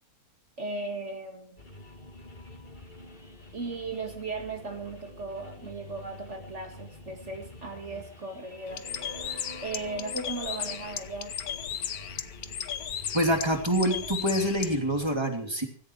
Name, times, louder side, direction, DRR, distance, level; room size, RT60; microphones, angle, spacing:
voice 1, 0.6-1.6 3.5-8.8 9.6-11.3, right 3 dB, 50° right, 4 dB, 2.4 m, -37 dB
sound 1, 1.6-15.1, left 1 dB, 30° left, 3.0 m, -47 dB
Bird, 8.7-14.8, left 9 dB, 75° left, 1.5 m, -36 dB
voice 2, 13.1-15.7, equal, 15° right, 4 dB, 3.1 m, -26 dB
17.0 x 15.0 x 4.7 m, 0.41 s
omnidirectional pair, 1.6 m